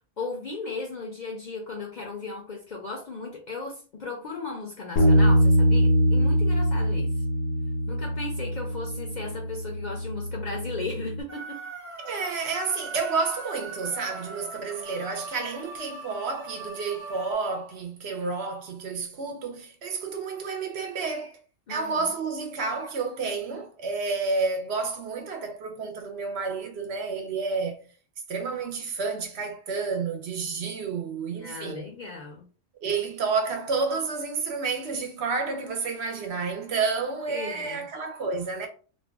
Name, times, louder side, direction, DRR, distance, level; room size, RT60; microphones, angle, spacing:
voice 1, 0.2-7.1 7.9-11.6 21.7-22.1 31.4-32.5 37.3-37.9, left 3 dB, 50° left, 0.5 m, -36 dB
Bass guitar, 5.0-11.2, equal, 70° left, 0.9 m, -23 dB
sound 1, 11.3-17.3, right 3 dB, 40° right, 0.9 m, -40 dB
voice 2, 12.0-21.4 21.7-27.8 28.3-31.9 32.8-38.7, right 4 dB, 65° right, 0.8 m, -30 dB
2.5 x 2.2 x 3.4 m
omnidirectional pair, 1.3 m